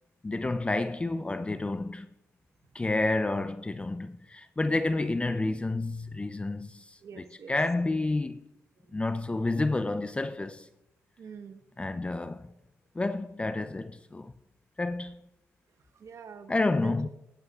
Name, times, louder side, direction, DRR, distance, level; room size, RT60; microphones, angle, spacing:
voice 1, 0.2-2.1 2.7-8.4 8.9-10.7 11.8-12.4 13.0-14.3 14.8-15.2 16.5-17.1, left 2 dB, 20° left, 0.5 m, -30 dB
voice 2, 7.0-7.6 8.8-9.0 11.2-11.6 15.9-17.1, right 6 dB, 60° right, 1.1 m, -46 dB
17.0 x 11.5 x 2.4 m
cardioid pair, 65°, 6 cm